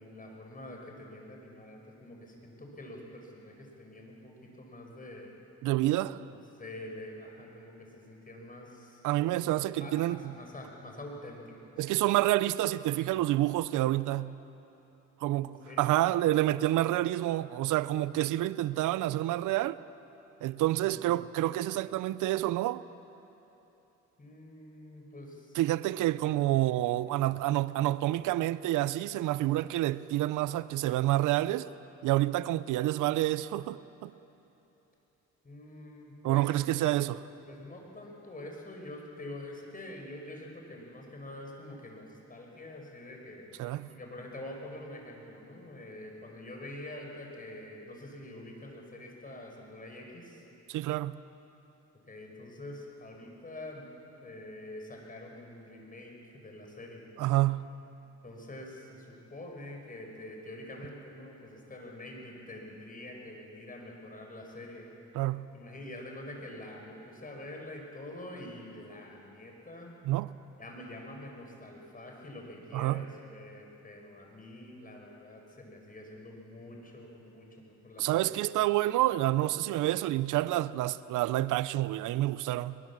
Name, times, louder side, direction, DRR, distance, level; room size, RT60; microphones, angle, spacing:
voice 1, 0.0-5.3 6.3-9.1 9.8-11.9 15.3-15.8 16.1-16.2 20.8-21.2 24.2-25.6 35.4-36.5 36.9-37.1 37.5-43.5 43.9-50.5 52.1-53.9 54.2-57.1 58.2-64.9 65.5-70.0 70.6-78.5, left 1 dB, 30° left, 5.5 m, -46 dB
voice 2, 5.6-6.2 9.0-10.2 11.8-14.3 15.2-19.8 20.4-22.8 25.6-31.7 32.0-34.1 36.2-37.2 43.6-43.9 50.7-51.2 57.2-57.6 65.1-65.5 70.0-70.3 72.7-73.0 78.0-82.8, right 15 dB, 85° right, 0.6 m, -28 dB
21.5 x 21.5 x 7.3 m
cardioid pair, 90°, 30 cm